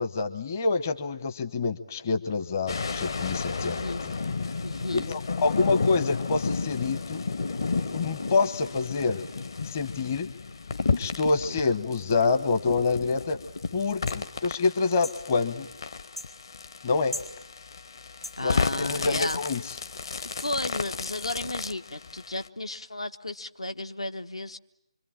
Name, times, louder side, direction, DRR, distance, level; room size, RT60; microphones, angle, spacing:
voice 1, 0.0-3.8 4.9-7.2 7.9-9.2 9.6-10.3 11.0-13.4 13.7-15.7 16.8-17.1 18.4-19.6, left 4 dB, 30° left, 11 dB, 1.0 m, -27 dB
sound 1, 2.7-22.5, left 4 dB, 50° left, 1.4 m, -33 dB
voice 2, 3.6-4.0 4.6-5.1 11.5-11.8 18.4-19.4 20.4-24.6, left 2 dB, 70° left, 9 dB, 1.4 m, -33 dB
sound 2, 14.1-14.2 15.0-15.2 16.1-16.3 17.1-17.3 18.2-18.4 19.3-19.4 20.4-20.5, left 1 dB, 90° left, 4.6 m, -38 dB
25.5 x 25.0 x 8.9 m, 0.80 s
figure-of-eight pair, 155°, 3 cm